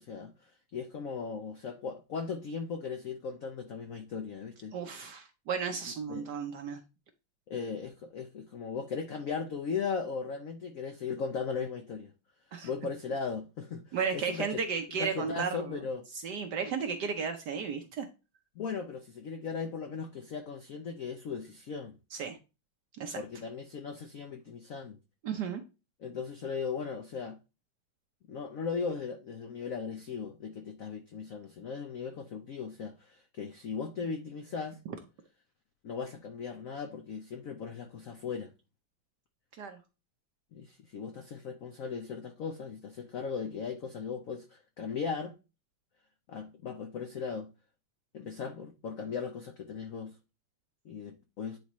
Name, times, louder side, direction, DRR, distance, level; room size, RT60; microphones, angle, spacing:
voice 1, 0.0-4.8 6.1-6.3 7.5-12.1 12.6-14.6 15.0-16.0 18.6-21.9 23.2-25.0 26.0-27.4 28.3-34.8 35.8-38.5 40.5-45.4 46.3-47.5 48.1-50.2 50.8-51.6, left 5 dB, 80° left, 0.7 m, -37 dB
voice 2, 4.7-6.8 12.5-12.7 13.9-15.6 16.2-18.1 22.1-22.4 23.0-23.2 25.2-25.6 34.9-35.0 39.6-39.8, right 6 dB, 65° right, 1.1 m, -34 dB
9.4 x 4.1 x 3.0 m
omnidirectional pair, 2.3 m